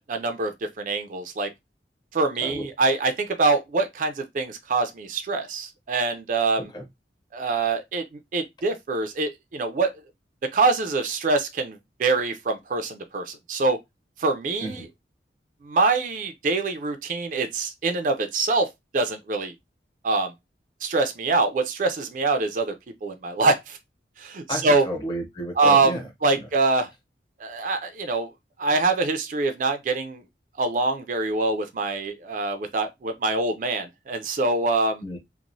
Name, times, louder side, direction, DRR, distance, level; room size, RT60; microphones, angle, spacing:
voice 1, 0.0-1.5 2.1-6.7 7.3-9.9 10.5-13.8 14.2-14.9 15.6-18.7 18.9-19.5 20.0-20.3 20.8-22.7 23.0-23.8 24.2-24.8 25.6-26.9 27.4-28.3 28.6-30.2 30.6-35.0, right 3 dB, 45° right, 0.4 m, -24 dB
voice 2, 24.5-26.0 26.3-26.5 35.0-35.2, equal, 25° left, 0.6 m, -32 dB
2.9 x 2.0 x 2.5 m
head